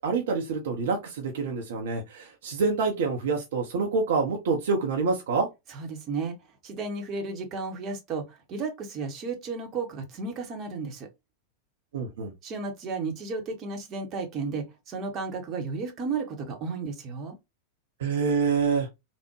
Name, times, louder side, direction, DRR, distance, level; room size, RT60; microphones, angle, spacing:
voice 1, 0.0-5.5 11.9-12.3 18.0-18.9, right 4 dB, 60° right, 0.6 m, -27 dB
voice 2, 5.7-6.4 6.6-11.1 12.4-17.4, right 4 dB, 35° right, 0.9 m, -33 dB
3.4 x 2.1 x 3.0 m
figure-of-eight pair, 90°, 0 cm